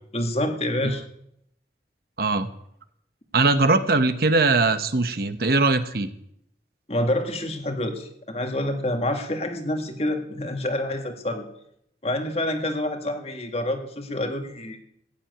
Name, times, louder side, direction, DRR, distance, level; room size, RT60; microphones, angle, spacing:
voice 1, 0.1-1.0 6.9-11.4 12.0-14.8, left 1 dB, 35° left, 5 dB, 1.7 m, -27 dB
voice 2, 2.2-2.5 3.3-6.1, right 3 dB, 55° right, 11 dB, 0.9 m, -21 dB
15.0 x 7.5 x 9.3 m, 0.74 s
head